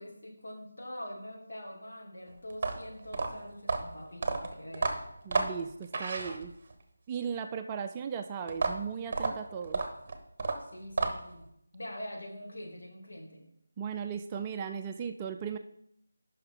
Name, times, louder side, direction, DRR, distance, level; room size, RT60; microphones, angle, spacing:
voice 1, 0.0-5.0 10.6-11.5 11.7-13.5, equal, 70° left, -1 dB, 2.6 m, -44 dB
sound 1, 2.5-6.8 8.5-11.4, right 3 dB, 35° right, 1.0 m, -32 dB
voice 2, 5.3-6.5 7.1-9.8 13.8-15.6, right 7 dB, 20° right, 6 dB, 0.4 m, -37 dB
9.7 x 5.7 x 3.8 m, 0.74 s
figure-of-eight pair, 165°, 0 cm